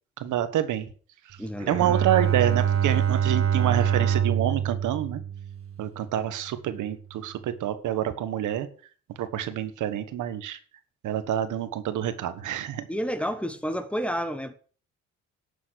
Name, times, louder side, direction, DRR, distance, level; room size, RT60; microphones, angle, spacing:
voice 1, 0.2-0.9 1.3-1.4 1.7-5.2 5.8-8.7 9.2-10.6 11.0-12.9, right 11 dB, 80° right, 1.4 m, -27 dB
voice 2, 1.4-2.1 12.9-14.5, equal, 5° left, 1.4 m, -30 dB
Bowed string instrument, 1.6-6.1, right 8 dB, 45° right, 1.8 m, -25 dB
11.5 x 7.3 x 6.4 m
cardioid pair, 90°, 30 cm